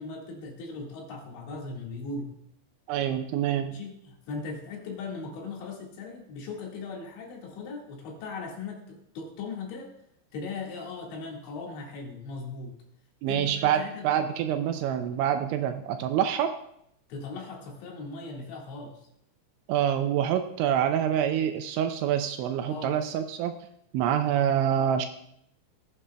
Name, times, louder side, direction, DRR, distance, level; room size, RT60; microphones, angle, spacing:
voice 1, 0.0-2.3 3.7-10.0 10.3-12.8 13.3-14.1 17.1-19.1 22.7-23.0, left 4 dB, 70° left, -1 dB, 4.0 m, -38 dB
voice 2, 2.9-3.8 13.2-16.6 19.7-23.7 23.9-25.1, right 9 dB, 85° right, 8 dB, 2.8 m, -26 dB
20.5 x 8.2 x 2.2 m, 0.73 s
omnidirectional pair, 5.6 m